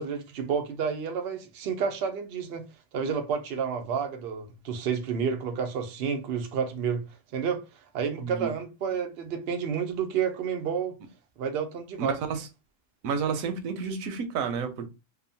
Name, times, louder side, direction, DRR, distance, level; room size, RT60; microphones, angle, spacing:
voice 1, 0.0-2.6 2.9-7.0 7.3-7.6 7.9-11.0 11.4-12.2, right 6 dB, 90° right, 0.5 m, -30 dB
voice 2, 8.2-8.5 12.0-12.5 13.0-14.9, right 6 dB, 70° right, 0.9 m, -30 dB
2.8 x 2.1 x 2.7 m
omnidirectional pair, 1.7 m